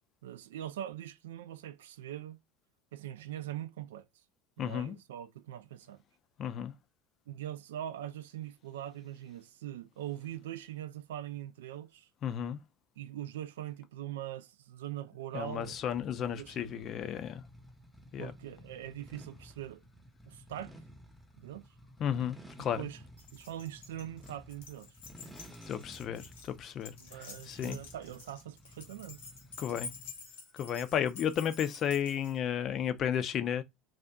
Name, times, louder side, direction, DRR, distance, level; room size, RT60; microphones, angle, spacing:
voice 1, 0.2-2.4 2.9-4.0 4.6-6.0 7.3-12.1 13.0-15.8 16.4-16.8 18.2-19.8 20.3-20.7 21.4-21.6 22.8-23.0 23.3-24.9 27.0-29.2, right 12 dB, 75° right, 0.3 m, -42 dB
voice 2, 4.6-4.9 6.4-6.7 12.2-12.6 15.3-17.4 18.1-18.3 22.0-22.8 25.7-26.9 27.5-27.8 29.6-29.9 30.5-33.6, left 9 dB, 45° left, 0.5 m, -33 dB
sound 1, 15.6-30.3, equal, 5° right, 0.8 m, -54 dB
Keys jangling, 23.2-32.4, left 4 dB, 70° left, 0.8 m, -49 dB
2.5 x 2.4 x 2.2 m
hypercardioid pair, 75°, 0 cm